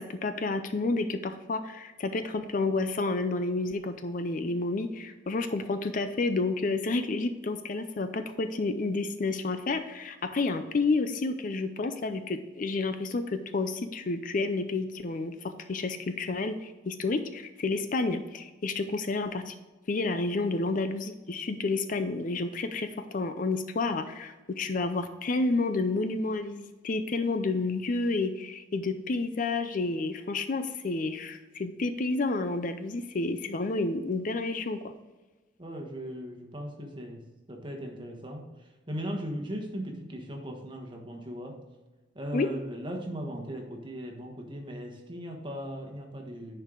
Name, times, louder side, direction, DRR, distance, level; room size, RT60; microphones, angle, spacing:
voice 1, 0.0-19.5 19.9-34.8 42.3-42.5, left 3 dB, 45° left, 9 dB, 0.5 m, -30 dB
voice 2, 35.6-37.2 37.5-41.6 42.1-46.6, equal, 25° right, 2 dB, 1.3 m, -38 dB
10.0 x 4.6 x 3.8 m, 1.2 s
head